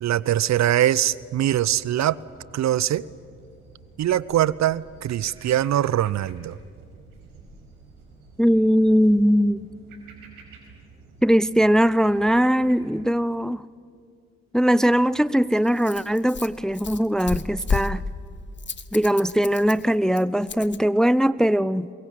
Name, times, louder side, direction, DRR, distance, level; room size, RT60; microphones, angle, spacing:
voice 1, 0.0-2.2 2.5-3.0 4.0-6.6, right 12 dB, 55° right, 0.7 m, -22 dB
sound 1, 1.1-13.1, right 4 dB, 75° right, 5.2 m, -49 dB
voice 2, 8.4-9.7 11.2-13.6 14.5-18.0 18.9-21.9, equal, ahead, 0.5 m, -20 dB
Rattle, 14.8-20.8, left 5 dB, 35° left, 1.4 m, -33 dB
23.0 x 22.5 x 9.1 m
hypercardioid pair, 50°, 34 cm